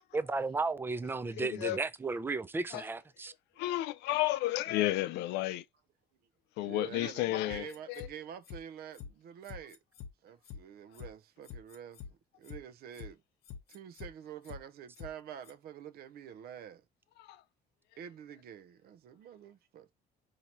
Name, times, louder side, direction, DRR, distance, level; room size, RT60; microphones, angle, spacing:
voice 1, 0.1-3.3, right 3 dB, 15° right, 0.3 m, -34 dB
voice 2, 1.3-1.8 2.7-2.8 3.6-5.6 6.6-8.1 17.2-17.4, left 15 dB, 85° left, 0.4 m, -32 dB
voice 3, 6.6-9.8 10.2-13.2 13.7-16.8 18.0-19.9, right 9 dB, 65° right, 0.6 m, -47 dB
sound 1, 7.5-8.1 8.4-8.6 8.9-9.1 9.4-10.1 10.4-10.6 10.9-11.1 11.4-12.1 12.4-12.6 12.9-13.1 13.4-14.1 14.4-14.6 14.9-15.1 15.4-15.5, left 7 dB, 70° left, 1.0 m, -45 dB
4.4 x 2.8 x 2.9 m
cardioid pair, 110°, 17 cm